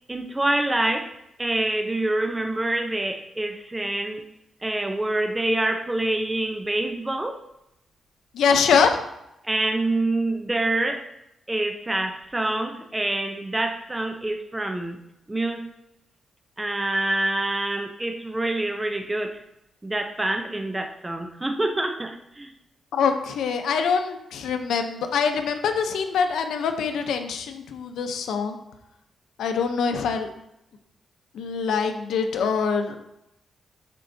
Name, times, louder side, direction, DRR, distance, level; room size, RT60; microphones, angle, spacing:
voice 1, 0.1-1.1 1.4-4.2 4.6-7.4 9.4-11.1 11.5-15.0 15.3-15.7 16.6-19.4 19.8-22.5, right 2 dB, 15° right, 5 dB, 0.7 m, -26 dB
voice 2, 8.3-9.0 22.9-28.6 29.4-30.3 31.3-33.0, left 6 dB, 85° left, 6 dB, 0.8 m, -24 dB
11.5 x 4.5 x 2.8 m, 0.85 s
cardioid pair, 135°, 0 cm